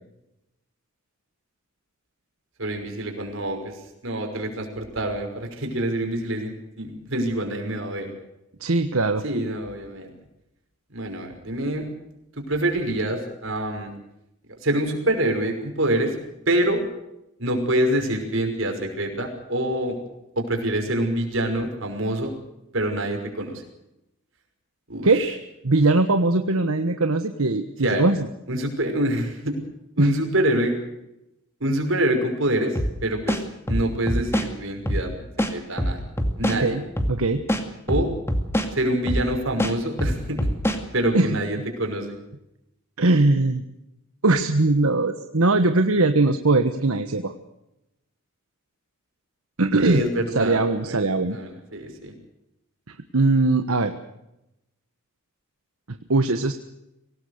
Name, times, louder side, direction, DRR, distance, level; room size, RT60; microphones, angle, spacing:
voice 1, 2.6-8.1 9.2-10.1 10.9-11.9 12.3-13.9 14.5-16.2 16.5-16.8 17.4-20.0 20.4-22.4 22.7-23.6 24.9-25.3 27.8-28.0 28.5-29.6 30.0-30.8 31.6-35.1 35.4-36.0 36.4-36.8 37.9-38.1 38.7-40.5 40.9-42.2 49.8-51.0 51.3-52.1, right 1 dB, 65° right, 4 dB, 5.8 m, -26 dB
voice 2, 8.6-9.2 25.0-25.2 25.6-28.3 30.0-30.1 36.6-36.8 37.1-37.4 41.1-41.3 43.0-43.6 44.2-47.3 49.6-50.0 50.3-51.4 53.1-53.9 56.1-56.5, right 2 dB, 85° right, 7 dB, 1.3 m, -20 dB
sound 1, 32.8-32.9 33.3-34.5 34.9-35.0 35.4-36.6 37.0-37.1 37.5-38.7 39.1-39.3 39.6-40.8, equal, 10° left, 2.3 m, -23 dB
24.5 x 18.0 x 6.6 m, 0.87 s
head